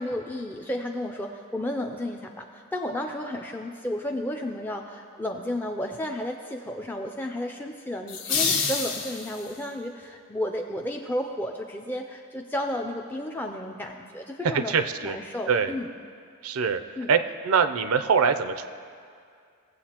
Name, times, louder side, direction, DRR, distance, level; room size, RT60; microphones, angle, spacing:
voice 1, 0.0-14.7 15.0-15.9 17.0-17.1, left 1 dB, 10° left, 2 dB, 0.4 m, -32 dB
sound 1, 8.1-9.7, left 5 dB, 70° left, 1.3 m, -27 dB
voice 2, 14.5-15.2 15.5-15.7 16.4-16.8 17.1-17.2 17.4-18.7, right 6 dB, 85° right, 10 dB, 0.5 m, -23 dB
17.0 x 7.9 x 2.9 m, 2.2 s
head